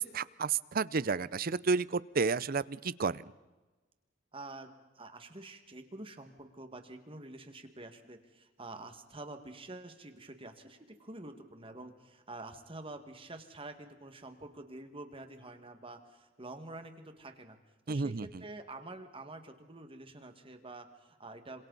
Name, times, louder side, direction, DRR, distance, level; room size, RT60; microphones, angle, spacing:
voice 1, 0.0-3.3 17.9-18.4, right 4 dB, 50° right, 19 dB, 0.6 m, -31 dB
voice 2, 4.3-17.6 17.9-21.7, right 2 dB, 30° right, 6 dB, 1.8 m, -47 dB
27.5 x 26.5 x 4.1 m, 1.2 s
head